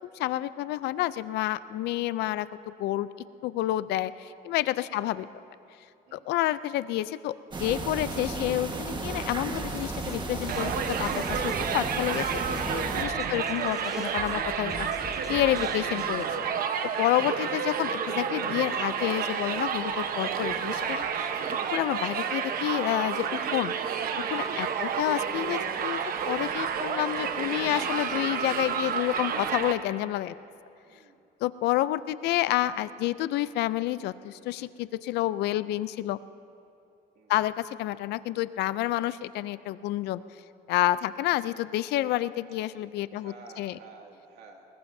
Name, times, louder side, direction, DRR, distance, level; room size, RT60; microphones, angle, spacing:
voice 1, 0.1-3.1 3.4-5.3 6.1-7.3 7.6-14.9 15.3-16.3 17.0-21.3 21.7-23.8 24.2-26.0 26.3-30.4 31.4-36.2 37.3-40.2 40.7-43.8, left 15 dB, 80° left, 15 dB, 0.5 m, -29 dB
sound 1, 7.5-13.0, right 2 dB, 25° right, 1.5 m, -34 dB
sound 2, 9.5-16.4, left 1 dB, 5° right, 4.3 m, -45 dB
Crowd, 10.5-29.7, right 7 dB, 60° right, 1.1 m, -30 dB
voice 2, 30.8-31.2 37.1-37.3 43.1-44.7, right 4 dB, 80° right, 1 dB, 2.3 m, -51 dB
25.0 x 20.5 x 2.7 m, 2.7 s
cardioid pair, 110°, 17 cm